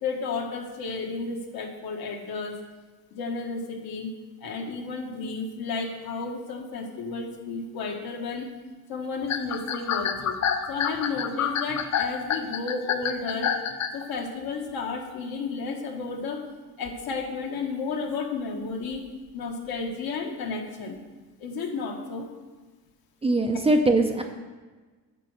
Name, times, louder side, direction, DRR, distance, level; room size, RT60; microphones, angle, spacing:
voice 1, 0.0-2.5 3.1-4.1 4.4-8.5 8.9-10.4 10.7-13.5 13.9-16.4 16.8-19.0 19.3-21.0 21.4-22.3, left 4 dB, 65° left, 2 dB, 1.6 m, -32 dB
sound 1, 9.2-14.0, left 8 dB, 45° left, 0.6 m, -27 dB
voice 2, 23.2-24.2, right 2 dB, 15° right, 4 dB, 0.5 m, -21 dB
8.4 x 5.3 x 6.6 m, 1.3 s
cardioid pair, 130°, 39 cm